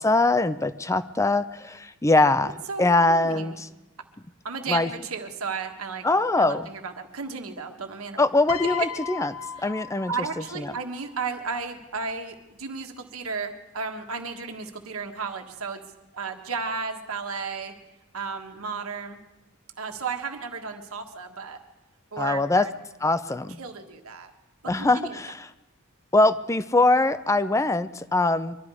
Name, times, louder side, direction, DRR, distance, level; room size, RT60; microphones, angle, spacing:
voice 1, 0.0-3.7 4.7-4.9 6.0-6.7 8.2-9.3 9.6-10.1 22.2-22.7 23.0-23.6 24.7-25.5 26.1-28.6, left 2 dB, 15° left, 14 dB, 0.5 m, -22 dB
voice 2, 2.7-3.6 4.4-6.1 6.4-8.2 8.6-8.9 9.6-9.7 10.1-15.8 16.1-17.7 18.1-19.2 19.8-21.6 22.1-22.7 23.3-24.3 24.6-25.2, right 5 dB, 80° right, 4 dB, 1.6 m, -34 dB
Piano, 8.5-10.8 11.9-12.1, left 7 dB, 80° left, 0.6 m, -36 dB
23.5 x 12.5 x 4.9 m, 1.0 s
head